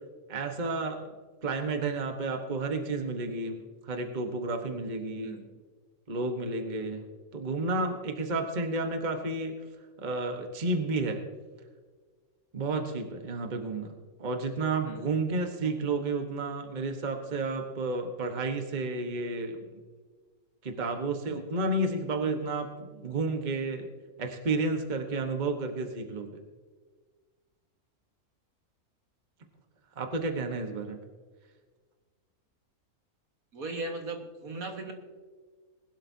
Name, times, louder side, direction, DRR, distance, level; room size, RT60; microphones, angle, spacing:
voice 1, 0.3-1.1 1.4-5.3 6.1-7.0 7.3-9.5 10.0-11.2 12.5-13.9 14.2-19.6 20.6-22.7 22.9-23.9 24.2-26.3 30.0-31.0, right 3 dB, 35° right, 4 dB, 1.2 m, -31 dB
voice 2, 33.5-34.9, right 2 dB, 70° right, 3 dB, 2.1 m, -37 dB
20.5 x 12.0 x 2.7 m, 1.5 s
omnidirectional pair, 1.6 m